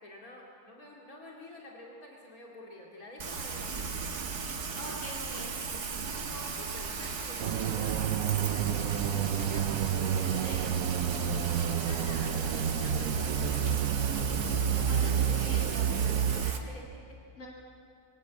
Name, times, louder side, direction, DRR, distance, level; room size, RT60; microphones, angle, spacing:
voice 1, 0.0-4.1 6.3-8.1 8.4-11.0 11.6-12.4 12.7-13.8 16.3-17.2, left 1 dB, 65° left, -3 dB, 3.0 m, -49 dB
Rain, 3.2-16.6, right 5 dB, 85° right, 2.0 m, -37 dB
voice 2, 4.7-5.5 10.4-10.7 14.7-16.2 17.4-17.5, left 1 dB, 50° left, -3 dB, 3.2 m, -43 dB
sound 1, 7.4-16.5, right 8 dB, 70° right, 1.1 m, -29 dB
23.5 x 18.5 x 8.4 m, 2.5 s
omnidirectional pair, 1.6 m